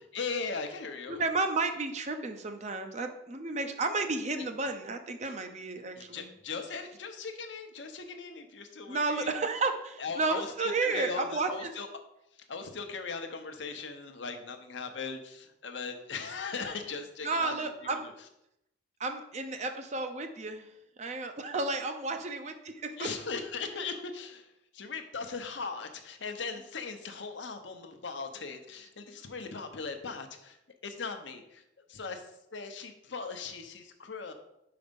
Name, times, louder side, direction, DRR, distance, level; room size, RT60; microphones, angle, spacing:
voice 1, 0.1-1.2 4.4-4.5 6.0-9.3 10.0-11.9 12.5-18.0 23.0-24.5 24.7-30.6 30.8-31.6 31.9-34.3, left 4 dB, 70° left, 6 dB, 0.8 m, -39 dB
voice 2, 1.1-6.3 8.9-11.8 17.2-18.1 19.0-20.7 21.0-23.1 23.7-23.8, right 3 dB, 35° right, 7 dB, 0.6 m, -32 dB
5.3 x 4.9 x 5.2 m, 0.82 s
head